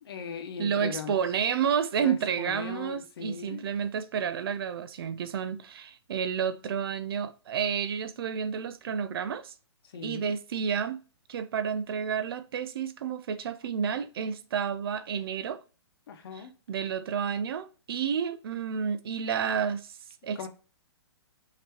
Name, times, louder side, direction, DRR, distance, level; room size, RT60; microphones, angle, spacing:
voice 1, 0.0-1.2 2.0-3.7 9.8-10.3 16.1-16.5 20.3-20.5, left 7 dB, 55° left, 1.1 m, -39 dB
voice 2, 0.6-9.5 10.0-11.0 11.3-15.6 16.7-19.9 20.2-20.5, right 7 dB, 55° right, 0.5 m, -30 dB
5.7 x 2.9 x 3.0 m
hypercardioid pair, 155°, 15 cm